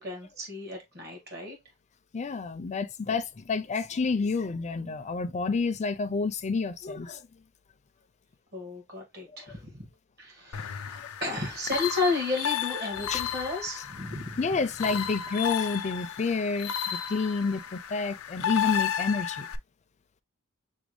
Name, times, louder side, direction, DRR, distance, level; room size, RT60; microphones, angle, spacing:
voice 1, 0.0-1.6 8.5-9.9 10.2-14.4, left 3 dB, 50° right, 1.7 m, -33 dB
voice 2, 2.1-7.2 11.0-11.1 13.1-13.2 14.4-19.5, left 4 dB, 35° left, 0.4 m, -29 dB
sound 1, 10.5-19.6, left 9 dB, 85° left, 0.5 m, -33 dB
6.1 x 2.2 x 3.1 m
head